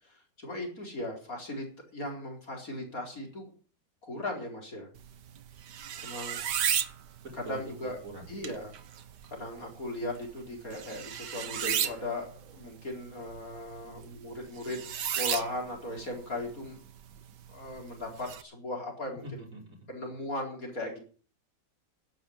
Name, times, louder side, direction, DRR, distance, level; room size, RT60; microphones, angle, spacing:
voice 1, 0.1-1.7 1.9-3.5 4.0-4.9 6.0-6.4 7.5-8.0 8.3-8.7 9.3-16.8 17.5-19.4 19.9-21.0, left 1 dB, 50° left, 1 dB, 4.8 m, -38 dB
sound 1, 5.0-18.4, right 9 dB, 70° right, 1.7 m, -36 dB
voice 2, 7.2-8.3 13.8-14.1 19.2-19.9, right 2 dB, 45° right, -1 dB, 6.3 m, -44 dB
12.0 x 10.0 x 7.9 m, 0.40 s
omnidirectional pair, 1.9 m